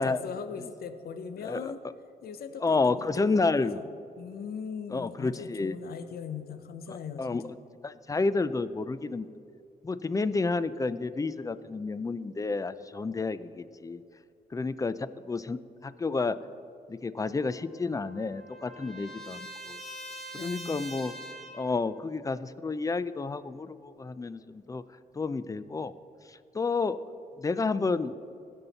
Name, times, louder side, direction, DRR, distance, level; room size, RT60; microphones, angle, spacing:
voice 1, 0.0-1.8 2.2-3.8 4.2-7.4 20.3-20.9, left 6 dB, 75° left, 10 dB, 0.6 m, -40 dB
voice 2, 1.4-1.7 2.6-3.8 4.9-5.8 6.9-7.6 7.8-9.3 9.8-14.0 14.5-16.4 16.9-19.8 20.3-21.1 21.5-24.8 25.1-25.9 26.3-27.0 27.4-28.2, left 3 dB, 20° left, 15 dB, 0.4 m, -30 dB
Trumpet, 17.3-21.7, equal, ahead, 1.6 m, -44 dB
16.5 x 5.5 x 4.1 m, 2.4 s
cardioid pair, 70°, 16 cm